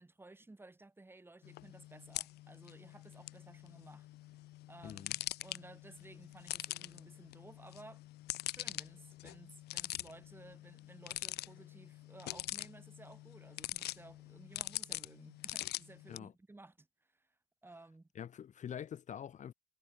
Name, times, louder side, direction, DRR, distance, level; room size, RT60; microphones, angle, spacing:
voice 1, 0.0-4.1 4.7-8.0 8.4-16.9 17.1-17.3 17.6-18.1, right 2 dB, 15° right, 8.0 m, -56 dB
sound 1, 1.4-16.2, left 16 dB, 75° left, 1.0 m, -44 dB
voice 2, 4.8-5.1 16.1-16.3 18.1-19.5, left 9 dB, 45° left, 1.5 m, -45 dB
cardioid pair, 110°, 17 cm